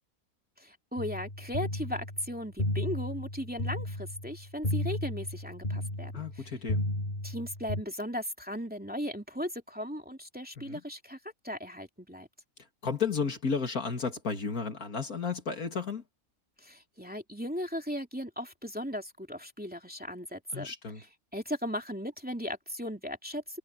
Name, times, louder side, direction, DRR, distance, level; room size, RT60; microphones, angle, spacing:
voice 1, 0.6-6.5 7.2-11.2 11.4-12.3 16.6-23.6, equal, 5° right, 2.8 m, -37 dB
sound 1, 1.0-7.8, left 1 dB, 30° left, 6.3 m, -34 dB
voice 2, 6.1-6.8 10.7-10.8 12.8-16.0 20.5-21.0, left 5 dB, 70° left, 2.9 m, -33 dB
omnidirectional pair, 1.6 m